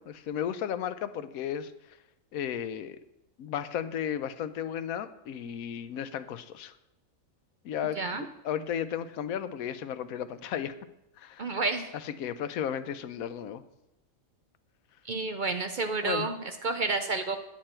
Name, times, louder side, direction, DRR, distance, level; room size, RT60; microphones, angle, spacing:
voice 1, 0.0-1.7 2.3-3.0 3.4-6.7 7.6-10.8 11.2-11.5 12.0-13.6 16.0-16.3, left 9 dB, 85° left, 12 dB, 1.1 m, -34 dB
voice 2, 11.4-11.9 15.0-17.4, right 3 dB, 55° right, 6 dB, 0.6 m, -30 dB
9.2 x 8.9 x 4.4 m, 0.89 s
omnidirectional pair, 1.4 m